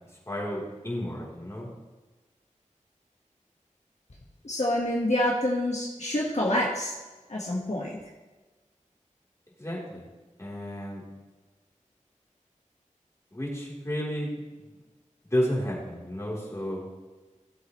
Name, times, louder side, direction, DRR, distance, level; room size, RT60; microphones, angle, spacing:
voice 1, 0.3-1.7 9.6-10.1 10.4-11.0 13.3-14.7 15.2-16.8, equal, 20° left, -5 dB, 3.9 m, -32 dB
voice 2, 4.4-6.9 7.3-8.0, left 1 dB, 60° left, -4 dB, 1.7 m, -27 dB
16.0 x 7.8 x 3.3 m, 1.2 s
wide cardioid pair, 50°, 13 cm